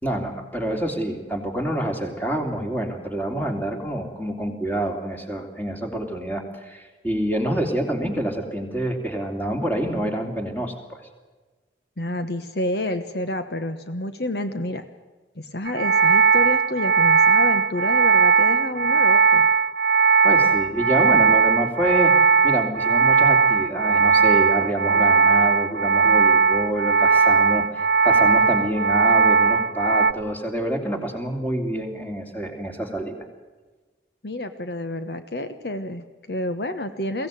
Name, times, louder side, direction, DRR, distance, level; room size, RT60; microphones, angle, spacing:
voice 1, 0.0-11.1 20.2-22.1 22.4-33.2, right 1 dB, 10° left, 3 dB, 3.1 m, -27 dB
voice 2, 12.0-14.8 15.4-19.5 34.2-37.3, left 1 dB, 60° left, 9 dB, 1.2 m, -29 dB
sound 1, 15.7-30.1, right 5 dB, 55° right, 1.0 m, -18 dB
23.0 x 17.0 x 9.2 m, 1.3 s
head